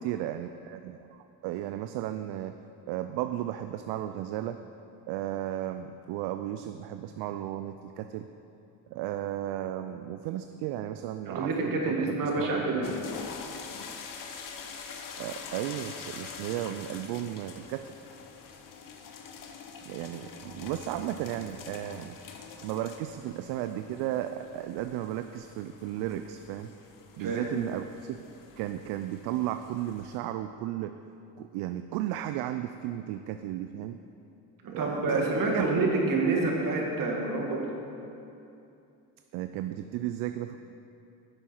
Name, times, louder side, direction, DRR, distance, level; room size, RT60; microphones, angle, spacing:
voice 1, 0.0-2.5 2.9-4.6 5.1-8.3 8.9-12.8 15.2-18.0 19.9-22.2 22.6-26.7 27.1-28.2 28.6-30.9 31.4-34.0 34.7-35.9 39.3-40.6, right 12 dB, 70° right, 9 dB, 0.5 m, -34 dB
voice 2, 11.3-12.9 27.2-27.5 34.6-37.8, right 3 dB, 55° right, -1 dB, 2.1 m, -28 dB
sound 1, 12.8-30.2, left 5 dB, 55° left, 1.0 m, -45 dB
10.5 x 7.2 x 4.5 m, 2.7 s
supercardioid pair, 80°, 40 cm